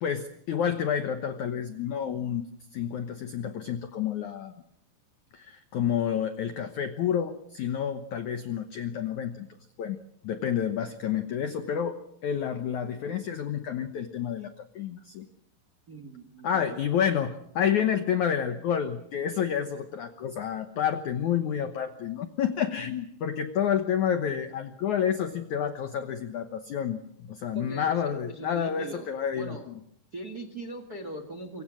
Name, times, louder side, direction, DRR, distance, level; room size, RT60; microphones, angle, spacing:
voice 1, 0.0-2.5 2.7-4.5 5.3-9.5 9.8-10.0 10.2-15.3 16.4-29.6, left 8 dB, 90° left, 8 dB, 1.6 m, -29 dB
voice 2, 15.9-16.8 27.5-29.1 29.3-29.7 30.1-31.6, right 2 dB, 55° right, 9 dB, 1.0 m, -40 dB
26.0 x 24.5 x 6.4 m, 0.70 s
omnidirectional pair, 5.2 m